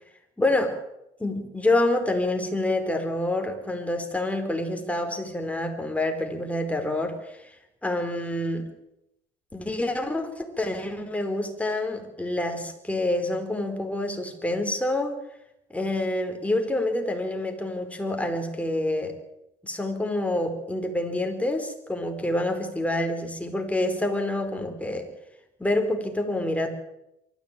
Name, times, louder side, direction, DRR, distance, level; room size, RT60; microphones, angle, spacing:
voice 1, 0.4-0.7 1.2-7.5 7.8-8.7 9.5-15.1 15.7-19.1 19.6-25.1 25.6-26.7, left 1 dB, 5° left, 5 dB, 4.6 m, -27 dB
23.5 x 14.5 x 9.3 m, 0.85 s
cardioid pair, 100°, 18 cm